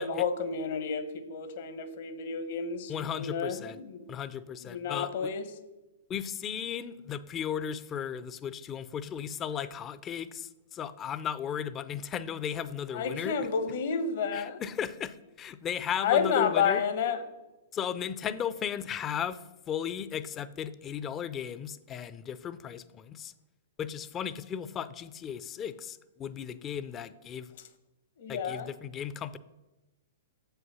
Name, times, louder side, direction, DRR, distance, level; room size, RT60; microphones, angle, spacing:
voice 1, 0.0-4.1 4.6-5.4 12.9-14.6 15.9-17.2 28.2-28.7, left 6 dB, 60° left, 10 dB, 1.0 m, -30 dB
voice 2, 2.9-3.8 4.1-5.3 6.1-13.4 14.3-16.8 17.7-23.3 23.8-27.5 28.3-29.4, left 8 dB, 25° left, 15 dB, 0.4 m, -36 dB
7.3 x 5.7 x 5.5 m, 1.0 s
hypercardioid pair, 120°, 0 cm